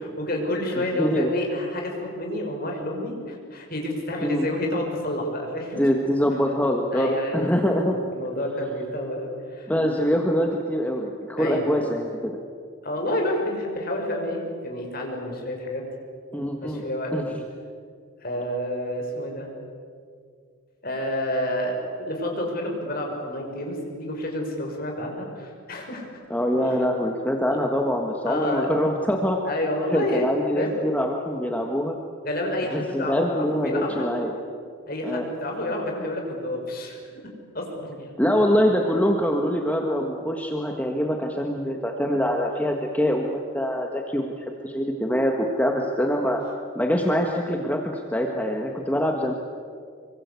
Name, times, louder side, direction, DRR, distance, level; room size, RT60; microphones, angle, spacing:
voice 1, 0.0-5.8 6.9-9.7 11.4-11.8 12.8-15.8 16.6-17.3 18.2-19.5 20.8-26.2 26.6-26.8 28.3-28.7 29.4-30.3 30.6-30.7 32.2-34.1 34.9-38.1, left 1 dB, 45° left, 1 dB, 5.6 m, -29 dB
voice 2, 0.9-1.3 4.2-4.5 5.8-7.9 9.7-12.4 16.3-16.8 17.1-17.3 26.3-29.4 29.9-32.0 32.7-34.4 35.0-35.3 38.2-46.4 46.7-49.3, equal, 5° left, 2 dB, 1.5 m, -24 dB
26.5 x 24.0 x 8.3 m, 2.2 s
head